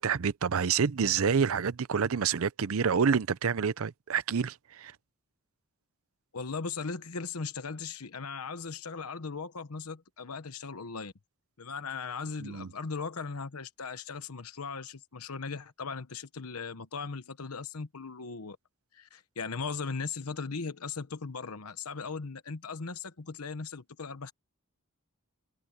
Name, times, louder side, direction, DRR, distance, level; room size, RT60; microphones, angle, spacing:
voice 1, 0.0-4.9 12.4-12.7, right 6 dB, 70° right, 0.6 m, -28 dB
voice 2, 6.3-11.1 11.6-18.6 18.9-24.3, left 5 dB, 85° left, 1.0 m, -38 dB
head